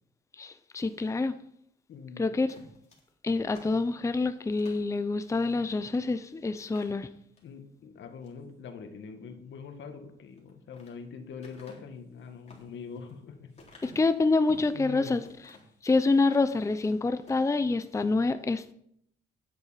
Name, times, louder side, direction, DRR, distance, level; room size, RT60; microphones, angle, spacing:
voice 1, 0.4-1.4 2.2-2.5 3.2-7.1 13.8-15.2 15.8-18.7, left 3 dB, 15° left, 0.6 m, -27 dB
voice 2, 1.9-2.4 7.4-13.5 14.7-15.2, left 5 dB, 70° left, 1.7 m, -43 dB
sound 1, 2.4-4.9 5.5-5.6 6.0-6.1 6.6-7.5 8.0-8.4 10.2-11.0 11.4-14.8 15.2-15.8 16.2-17.0 17.2-17.5, left 2 dB, 35° left, 3.8 m, -53 dB
9.6 x 8.1 x 5.7 m
cardioid pair, 90°, 20 cm